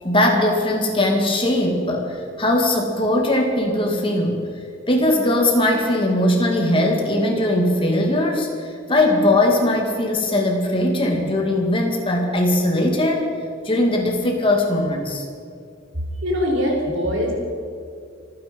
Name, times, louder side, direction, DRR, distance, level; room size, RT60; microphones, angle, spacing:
voice 1, 0.0-4.4 4.9-8.5 8.9-13.3 13.6-15.2, left 1 dB, 25° left, 1 dB, 2.2 m, -20 dB
voice 2, 16.2-17.3, equal, 75° right, 0 dB, 4.1 m, -22 dB
25.0 x 9.8 x 5.3 m, 2.4 s
head